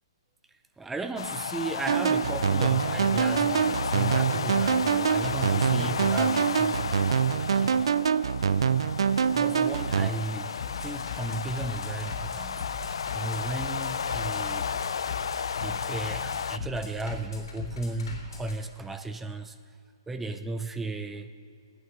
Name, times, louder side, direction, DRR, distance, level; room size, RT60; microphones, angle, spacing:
voice 1, 0.8-7.9 9.3-10.5 10.8-14.7 15.6-19.6 20.1-21.3, right 3 dB, 5° right, 9 dB, 0.4 m, -35 dB
sound 1, 1.2-16.6, left 6 dB, 80° left, 0.4 m, -33 dB
sound 2, 1.9-10.1, right 7 dB, 80° right, 0.4 m, -25 dB
Bass drum, 8.3-18.6, left 5 dB, 60° left, 3.4 m, -41 dB
16.0 x 9.4 x 6.6 m, 2.2 s
hypercardioid pair, 165°, 3 cm